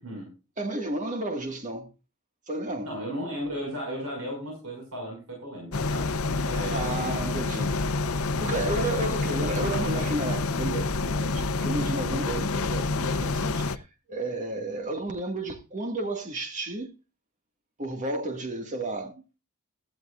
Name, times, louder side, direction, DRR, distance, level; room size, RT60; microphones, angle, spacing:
voice 1, 0.6-1.9 2.5-2.9 6.7-7.7 8.4-16.9 17.8-19.2, right 2 dB, 35° right, 2.0 m, -32 dB
voice 2, 2.8-6.1 6.4-6.9 8.6-8.9, equal, 75° right, 6.2 m, -35 dB
sound 1, 5.7-13.8, left 3 dB, 75° left, 0.7 m, -28 dB
17.0 x 13.0 x 2.6 m
head